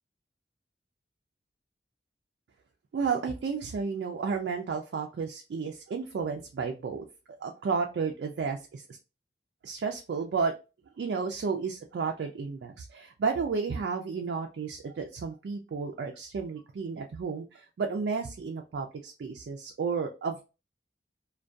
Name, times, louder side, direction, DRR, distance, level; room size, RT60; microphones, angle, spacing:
voice 1, 2.9-7.0 7.4-8.8 9.6-10.5 11.0-20.4, right 5 dB, 65° right, 3 dB, 0.3 m, -32 dB
2.5 x 2.2 x 2.3 m, 0.30 s
head